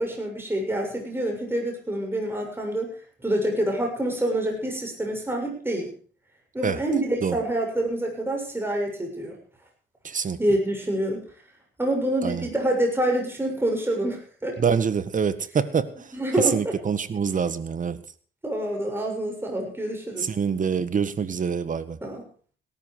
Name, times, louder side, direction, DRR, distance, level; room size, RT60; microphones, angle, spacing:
voice 1, 0.0-2.9 3.2-5.9 6.5-9.4 10.4-11.2 11.8-14.5 16.1-16.7 18.4-20.3 22.0-22.3, right 1 dB, 10° right, 1 dB, 7.1 m, -26 dB
voice 2, 10.0-10.4 12.2-12.5 14.6-15.9 16.4-18.0 20.2-22.0, right 6 dB, 40° right, 13 dB, 1.7 m, -25 dB
17.5 x 13.0 x 4.9 m, 0.43 s
cardioid pair, 90°, 20 cm